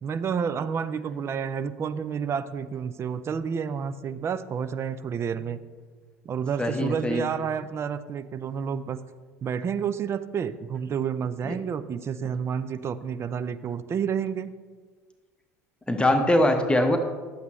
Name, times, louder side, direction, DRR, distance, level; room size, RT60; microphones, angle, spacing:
voice 1, 0.0-5.6 6.2-9.0 9.4-14.5, right 7 dB, 30° right, 13 dB, 0.5 m, -30 dB
voice 2, 6.6-7.2 11.5-11.6 15.9-17.0, left 1 dB, 10° left, 5 dB, 0.9 m, -22 dB
11.5 x 8.0 x 3.1 m, 1.5 s
figure-of-eight pair, 70°, 9 cm